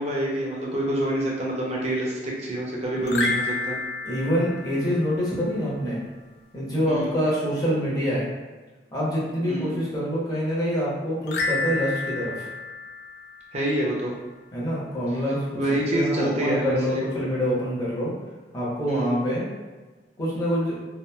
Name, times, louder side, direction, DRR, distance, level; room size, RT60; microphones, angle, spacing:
voice 1, 0.0-3.8 6.9-7.1 9.5-9.7 13.5-14.1 15.5-17.1 18.9-19.2, right 1 dB, 40° right, -3 dB, 0.6 m, -27 dB
sound 1, 3.0-5.5 11.2-13.9, left 3 dB, 65° left, 0.3 m, -30 dB
voice 2, 4.0-6.0 6.5-8.3 8.9-12.5 14.5-18.1 18.5-19.5 20.2-20.7, equal, 20° left, -7 dB, 0.8 m, -26 dB
2.9 x 2.4 x 2.2 m, 1.3 s
head